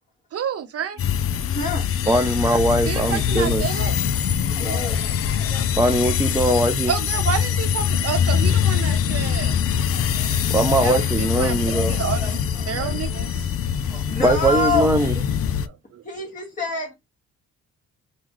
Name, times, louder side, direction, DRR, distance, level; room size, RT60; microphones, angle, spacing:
voice 1, 0.3-1.0 2.9-4.0 6.9-9.5 10.8-11.6 11.9-13.5 15.7-16.0, right 8 dB, 50° right, 0.9 m, -29 dB
sound 1, 1.0-15.7, left 8 dB, 50° left, 0.5 m, -23 dB
voice 2, 1.5-2.3 4.4-5.6 6.0-6.2 12.7-12.8 13.9-15.2 16.0-16.9, left 2 dB, 25° left, 1.6 m, -28 dB
voice 3, 2.1-3.6 5.5-6.9 10.5-12.3 12.8-12.9 13.9-15.1, right 1 dB, 10° right, 0.5 m, -21 dB
5.6 x 2.3 x 3.1 m
cardioid pair, 90°, 30 cm